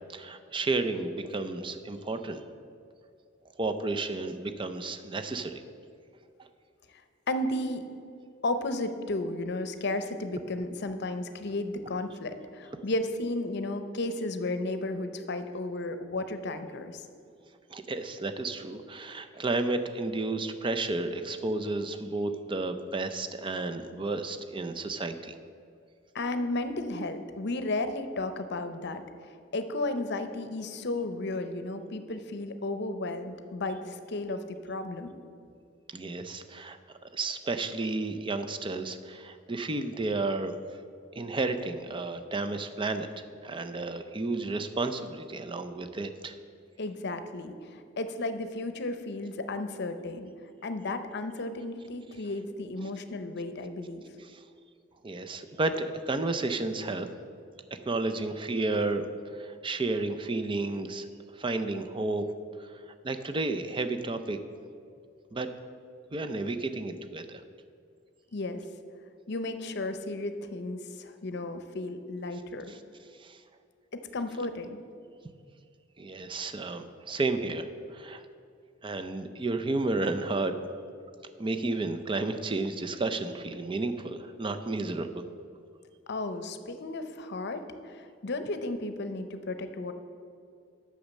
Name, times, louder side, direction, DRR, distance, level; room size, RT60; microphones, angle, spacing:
voice 1, 0.1-2.4 3.6-5.6 17.7-25.4 35.9-36.8 37.1-40.5 41.2-43.1 43.4-46.4 54.3-54.4 55.0-57.1 57.9-61.1 61.4-62.3 62.6-62.7 63.0-64.4 65.3-65.5 66.1-67.4 72.7-72.8 73.2-73.4 76.0-78.2 78.8-80.5 81.4-85.2, right 2 dB, 25° right, 8 dB, 0.5 m, -32 dB
voice 2, 7.3-7.8 8.4-17.0 26.1-29.0 29.5-35.1 46.8-50.3 50.6-54.0 68.3-68.6 69.3-72.7 73.9-74.8 86.1-89.9, left 2 dB, 60° left, 9 dB, 0.7 m, -33 dB
8.4 x 6.4 x 7.1 m, 2.4 s
head